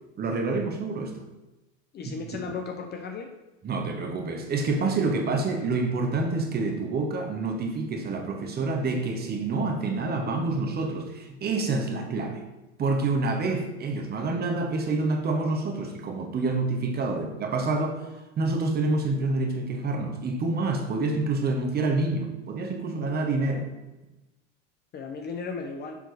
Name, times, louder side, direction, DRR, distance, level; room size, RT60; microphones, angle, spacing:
voice 1, 0.2-1.2 2.0-2.2 3.6-12.4 12.8-18.1 18.4-23.7, right 3 dB, 25° right, 3 dB, 1.1 m, -27 dB
voice 2, 1.9-3.3 24.9-26.0, left 5 dB, 25° left, 4 dB, 0.6 m, -35 dB
7.0 x 3.8 x 4.8 m, 1.0 s
hypercardioid pair, 100°, 39 cm